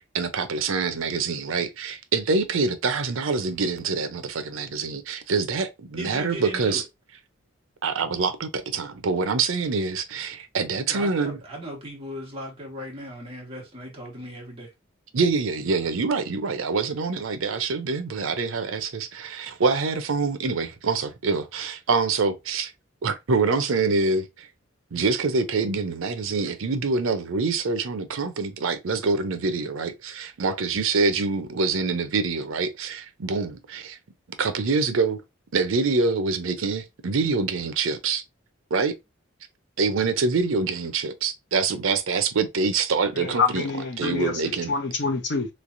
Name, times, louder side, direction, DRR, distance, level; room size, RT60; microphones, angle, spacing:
voice 1, 0.1-6.8 7.8-11.4 15.1-22.7 23.0-24.5 24.9-34.0 34.4-35.2 35.5-38.2 38.7-38.9 39.8-43.6 44.0-44.7, right 4 dB, 85° right, 0.6 m, -25 dB
voice 2, 6.0-6.8 10.9-14.7, equal, 30° right, 1.4 m, -37 dB
voice 3, 43.1-45.5, left 5 dB, 60° left, 0.8 m, -26 dB
3.2 x 3.2 x 2.5 m
head